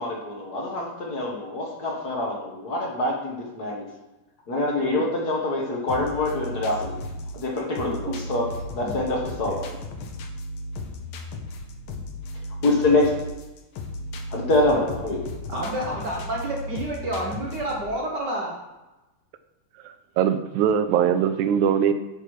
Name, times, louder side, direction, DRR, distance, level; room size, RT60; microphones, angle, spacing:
voice 1, 0.0-3.8 4.5-7.0 7.3-8.5 8.7-9.6 12.6-13.1 14.3-15.2, left 2 dB, 50° left, -1 dB, 1.1 m, -25 dB
sound 1, 5.9-17.9, left 1 dB, 80° left, 1.1 m, -35 dB
voice 2, 7.8-8.2 8.8-8.9 15.5-18.5, right 1 dB, 60° right, -2 dB, 1.1 m, -29 dB
voice 3, 19.8-21.9, right 8 dB, 80° right, 11 dB, 1.9 m, -22 dB
9.9 x 5.9 x 4.8 m, 1.0 s
omnidirectional pair, 3.5 m